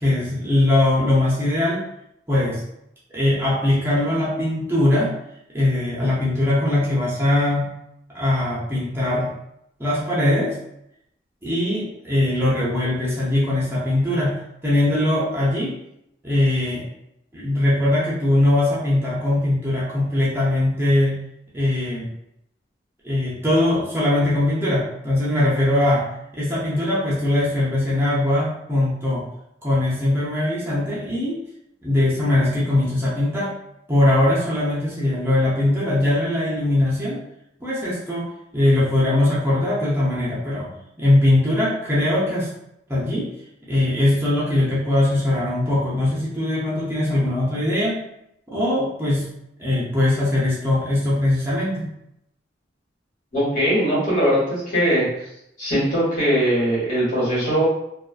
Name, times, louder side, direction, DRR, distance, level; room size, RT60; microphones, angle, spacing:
voice 1, 0.0-1.9 2.3-2.6 3.1-5.1 5.5-7.7 8.1-9.3 9.8-10.5 11.4-15.7 16.2-16.8 17.3-21.2 21.5-22.1 23.0-29.2 29.6-31.4 31.8-33.5 33.9-37.2 37.6-38.3 38.5-40.7 41.0-42.5 42.9-43.3 43.7-48.0 48.5-49.3 49.6-51.9, left 1 dB, 15° right, -7 dB, 0.5 m, -21 dB
voice 2, 53.3-55.1 55.6-57.6, equal, 45° left, -7 dB, 1.3 m, -20 dB
2.4 x 2.2 x 2.4 m, 0.80 s
head